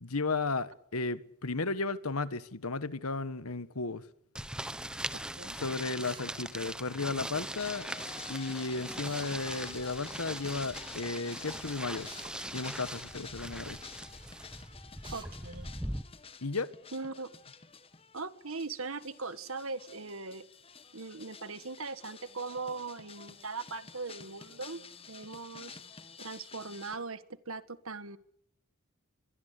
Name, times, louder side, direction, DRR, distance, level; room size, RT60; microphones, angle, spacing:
voice 1, 0.0-4.1 5.5-7.9 8.3-12.1 12.5-13.8 16.4-16.7, left 3 dB, 90° left, 1.5 m, -34 dB
sound 1, 4.4-16.0, right 1 dB, 5° right, 0.9 m, -41 dB
voice 2, 5.1-5.6 15.1-15.7 16.9-17.3 18.1-20.4 20.9-25.8 26.2-28.2, right 3 dB, 70° right, 1.6 m, -40 dB
Drill, 6.0-6.3 9.0-9.3 12.1-12.3 15.0-15.3, right 4 dB, 20° right, 3.0 m, -48 dB
sound 2, 7.4-27.0, left 5 dB, 25° left, 1.6 m, -50 dB
23.0 x 23.0 x 8.4 m
head